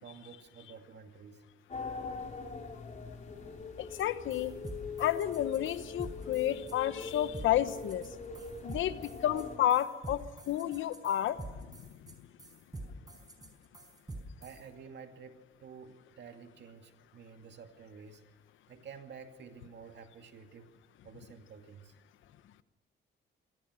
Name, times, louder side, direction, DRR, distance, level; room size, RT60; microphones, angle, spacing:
voice 1, 0.0-1.4 8.4-8.5 14.4-18.2 18.7-20.7 21.0-21.9, right 6 dB, 60° right, 6 dB, 2.4 m, -51 dB
sound 1, 1.7-9.6, left 4 dB, 40° left, 4.5 m, -42 dB
voice 2, 3.8-4.5 5.0-8.0 8.6-11.9, left 12 dB, 80° left, 14 dB, 1.1 m, -31 dB
sound 2, 4.0-4.1 4.3-14.6, right 2 dB, 20° right, 4.6 m, -46 dB
24.5 x 18.0 x 6.4 m, 1.2 s
cardioid pair, 90°, 20 cm